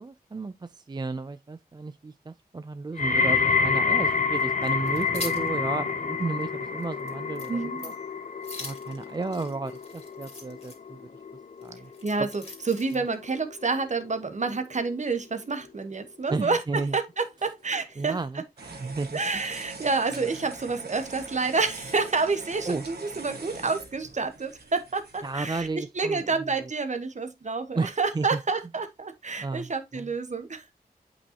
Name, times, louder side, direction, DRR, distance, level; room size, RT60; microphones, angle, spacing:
voice 1, 0.0-7.9 8.6-11.0 11.6-11.9 12.2-12.3 16.3-17.0 18.0-19.4 20.1-20.3 22.6-22.8 25.2-26.3 26.6-26.7 27.7-28.4 29.4-30.1, right 3 dB, 25° right, 0.4 m, -33 dB
sound 1, 3.0-14.1 14.4-14.9 15.6-15.7, left 5 dB, 55° left, 0.8 m, -29 dB
sound 2, 4.4-5.5 5.9-6.0 6.4-6.5 6.8-7.1 7.4-7.5 7.8-8.0 8.4-10.8 11.6-13.1, left 2 dB, 40° left, 2.7 m, -41 dB
voice 2, 7.5-8.0 12.0-18.1 19.1-30.7, right 4 dB, 50° right, 1.2 m, -29 dB
sound 3, 18.6-25.7, right 3 dB, 90° right, 1.9 m, -43 dB
8.3 x 5.4 x 2.8 m
wide cardioid pair, 70°, 16 cm